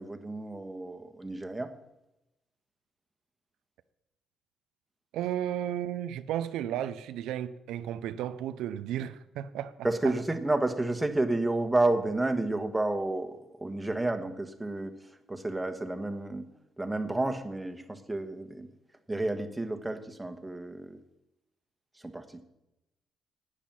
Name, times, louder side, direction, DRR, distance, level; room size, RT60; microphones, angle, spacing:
voice 1, 0.0-1.7 9.8-14.9 15.3-16.5 16.8-18.7 19.1-21.0 22.1-22.4, right 2 dB, 10° right, 1.4 m, -30 dB
voice 2, 5.1-9.8 10.0-10.1, right 11 dB, 90° right, 0.5 m, -33 dB
10.0 x 9.1 x 7.4 m
cardioid pair, 90°, 0 cm